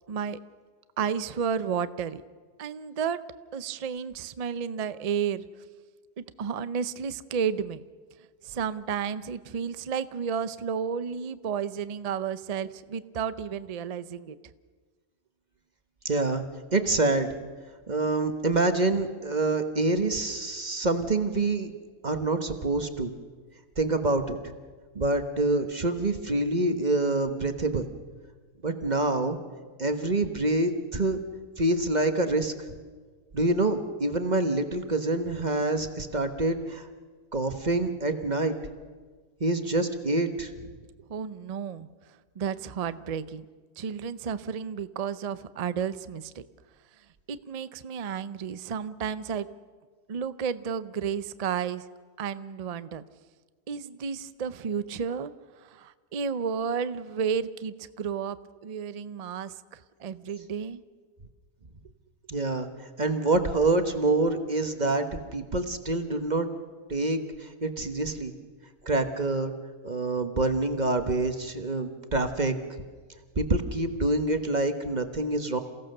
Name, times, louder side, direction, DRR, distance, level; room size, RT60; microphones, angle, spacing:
voice 1, 0.1-0.4 1.0-2.2 2.6-3.2 3.5-5.4 6.2-7.8 8.4-14.4 41.1-41.9 42.4-43.4 43.8-46.4 47.3-49.5 50.1-51.8 52.2-53.0 53.7-55.3 55.7-59.5 60.0-60.8, right 7 dB, 55° right, 14 dB, 0.4 m, -32 dB
voice 2, 16.0-16.4 16.7-17.3 17.9-21.7 22.0-23.1 23.8-24.4 24.9-27.9 28.6-29.4 29.8-31.2 31.6-32.5 33.3-36.9 37.3-38.5 39.4-40.7 62.3-62.7 63.0-65.1 65.3-66.5 66.9-68.3 68.8-69.5 69.8-72.6 73.4-75.6, right 2 dB, 30° right, 7 dB, 1.2 m, -26 dB
28.0 x 16.5 x 6.7 m, 1.5 s
omnidirectional pair, 1.6 m